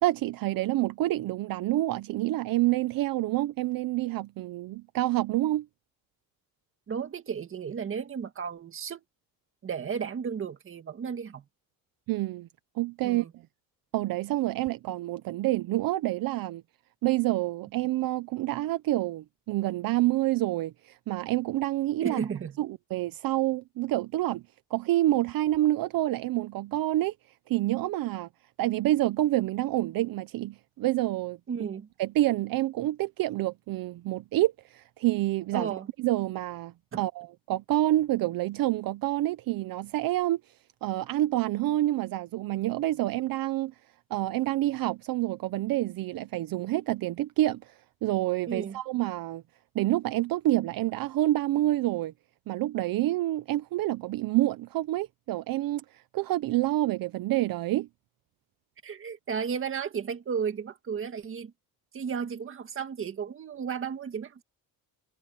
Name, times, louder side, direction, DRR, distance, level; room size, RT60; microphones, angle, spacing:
voice 1, 0.0-5.7 12.1-12.5 12.8-13.2 13.9-16.6 17.0-22.2 22.6-24.4 24.7-27.1 27.5-28.3 28.6-31.4 32.0-35.7 36.0-40.4 40.8-43.7 44.1-49.4 49.7-52.1 52.5-57.9, right 16 dB, 65° right, 0.7 m, -28 dB
voice 2, 6.9-9.0 9.6-11.4 13.0-13.3 22.0-22.6 31.5-31.9 35.5-35.9 36.9-37.0 48.5-48.8 58.8-61.5 61.9-64.4, right 7 dB, 35° right, 1.9 m, -33 dB
cardioid pair, 165°, 36 cm